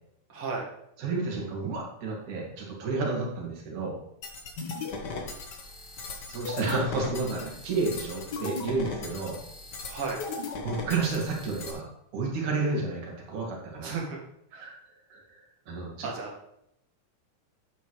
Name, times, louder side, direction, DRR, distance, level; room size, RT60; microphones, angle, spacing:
voice 1, 0.3-0.7 9.9-10.2 13.8-14.2 14.5-14.7 16.0-16.3, right 4 dB, 45° right, 0 dB, 2.2 m, -33 dB
voice 2, 1.0-4.0 6.3-9.4 10.6-11.9 12.1-13.9 14.5-14.7 15.1-15.2 15.7-16.1, right 3 dB, 65° right, -2 dB, 3.4 m, -31 dB
sound 1, 4.2-11.7, left 3 dB, 85° left, 0.9 m, -37 dB
10.5 x 8.2 x 3.2 m, 0.78 s
omnidirectional pair, 3.8 m